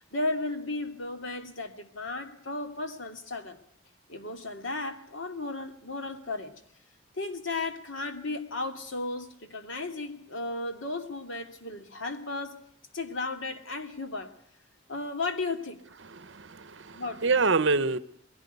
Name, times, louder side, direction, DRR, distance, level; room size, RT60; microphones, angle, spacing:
voice 1, 0.0-3.6 4.1-6.5 7.1-12.5 12.9-14.3 14.9-15.8 16.9-17.3, left 2 dB, 65° left, 2.6 m, -34 dB
voice 2, 16.0-18.0, right 4 dB, 60° right, 0.9 m, -26 dB
21.5 x 16.5 x 8.1 m
head